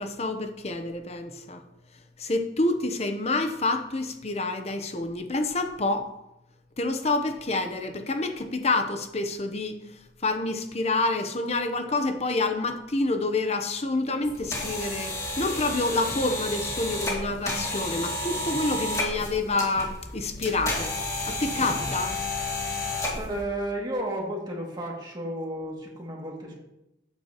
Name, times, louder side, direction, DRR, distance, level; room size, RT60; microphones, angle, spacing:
voice 1, 0.0-1.6 2.2-6.1 6.8-21.0 21.3-22.1, left 2 dB, 35° left, 7 dB, 0.9 m, -28 dB
sound 1, 14.2-23.4, left 2 dB, 20° left, 2.0 m, -31 dB
voice 2, 22.6-26.5, right 1 dB, 25° right, -3 dB, 2.4 m, -33 dB
12.0 x 8.8 x 3.0 m, 0.89 s
head